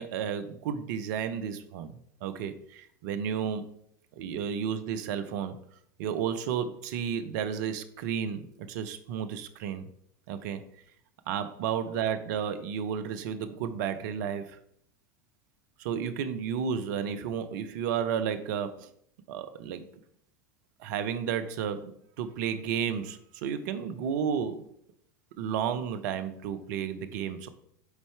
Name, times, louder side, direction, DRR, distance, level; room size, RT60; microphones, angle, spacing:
voice 1, 0.0-3.8 4.2-5.6 6.0-9.9 10.3-10.6 11.3-14.6 15.8-18.9 19.3-19.8 20.8-21.9 22.2-24.7 25.4-27.5, right 8 dB, 65° right, 11 dB, 0.7 m, -32 dB
8.1 x 4.1 x 3.3 m, 0.69 s
hypercardioid pair, 85°, 11 cm